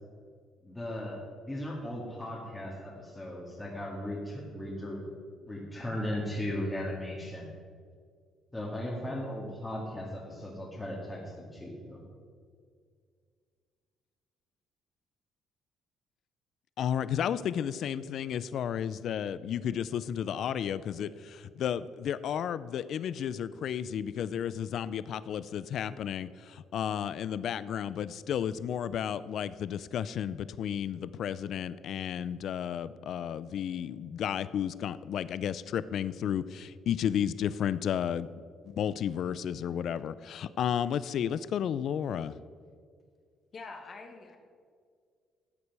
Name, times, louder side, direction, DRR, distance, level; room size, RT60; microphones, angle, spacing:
voice 1, 0.6-5.0 5.5-7.5 8.5-12.0, left 1 dB, 10° left, -5 dB, 2.0 m, -37 dB
voice 2, 16.8-38.3 38.6-42.4, left 9 dB, 60° left, 16 dB, 0.4 m, -32 dB
voice 3, 43.5-44.4, left 4 dB, 40° left, 4 dB, 1.4 m, -45 dB
13.5 x 8.3 x 4.7 m, 2.1 s
cardioid pair, 120°, 0 cm